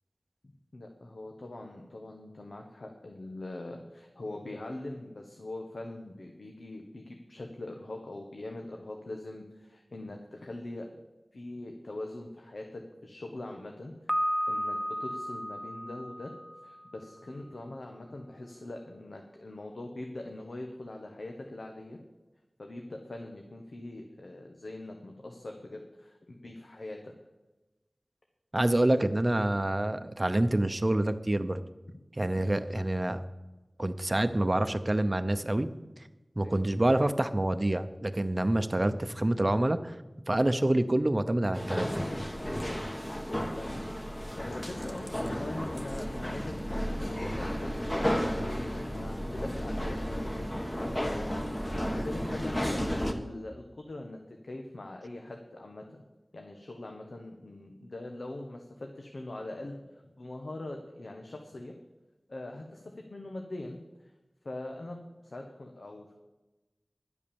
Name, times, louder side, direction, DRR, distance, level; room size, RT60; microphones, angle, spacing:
voice 1, 0.7-10.8 11.3-16.3 16.6-22.0 22.6-27.0 36.4-36.7 42.4-43.8 44.3-47.7 48.2-50.5 50.8-51.4 52.0-52.8 53.2-56.0 56.3-61.8 62.3-64.1 64.4-66.1, left 2 dB, 75° left, 2 dB, 1.2 m, -42 dB
Piano, 14.1-17.0, equal, 5° left, 0.6 m, -33 dB
voice 2, 28.5-31.6 32.2-33.2 33.8-35.7 36.4-39.9 40.3-41.9, right 1 dB, 35° right, 11 dB, 0.7 m, -27 dB
sound 1, 41.5-53.1, equal, 20° left, 1.3 m, -33 dB
11.0 x 8.5 x 7.0 m, 1.1 s
wide cardioid pair, 60°, 0 cm